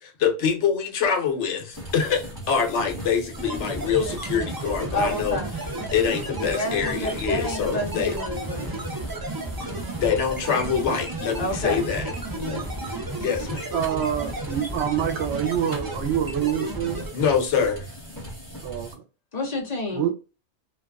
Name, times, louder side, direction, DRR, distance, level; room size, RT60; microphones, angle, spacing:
voice 1, 0.0-5.4 5.9-8.1 10.0-12.0 13.2-13.7 17.1-17.9, left 6 dB, 85° left, 1.0 m, -25 dB
sound 1, 1.7-18.9, right 1 dB, 15° left, 1.2 m, -39 dB
sound 2, 3.3-17.1, right 2 dB, 30° right, 0.4 m, -33 dB
voice 2, 4.9-5.6 6.3-8.7 11.4-11.9 12.3-12.7 19.3-20.1, left 1 dB, 50° left, 0.6 m, -29 dB
voice 3, 13.7-17.0 18.6-18.9 19.9-20.1, right 10 dB, 75° right, 0.8 m, -26 dB
2.4 x 2.3 x 2.2 m
omnidirectional pair, 1.2 m